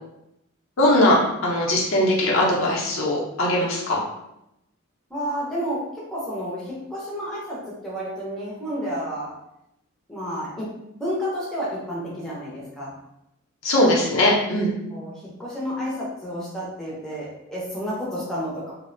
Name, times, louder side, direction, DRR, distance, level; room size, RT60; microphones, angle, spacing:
voice 1, 0.8-4.0 13.6-14.7, left 1 dB, 70° left, -4 dB, 0.6 m, -20 dB
voice 2, 5.1-9.3 10.1-10.7 11.0-12.9 14.9-18.7, equal, ahead, -7 dB, 0.5 m, -30 dB
2.4 x 2.0 x 2.5 m, 0.83 s
head